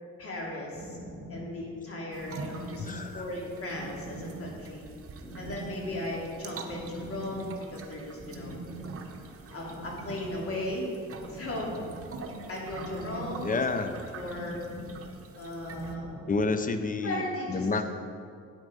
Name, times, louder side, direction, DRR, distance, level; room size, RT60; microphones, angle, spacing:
voice 1, 0.2-1.0 1.3-4.8 5.3-8.5 9.5-10.9 11.3-11.8 12.5-13.6 14.1-14.6 15.3-16.1 17.0-17.8, left 1 dB, 50° left, -3 dB, 2.7 m, -37 dB
sound 1, 0.7-16.3, right 1 dB, 10° left, 2.4 m, -43 dB
sound 2, 2.1-15.9, right 4 dB, 50° right, 1.0 m, -47 dB
voice 2, 2.8-3.2 13.4-14.0 16.3-17.2 17.5-17.8, left 3 dB, 25° left, 8 dB, 0.7 m, -29 dB
8.7 x 8.1 x 4.9 m, 2.4 s
cardioid pair, 90°, 30 cm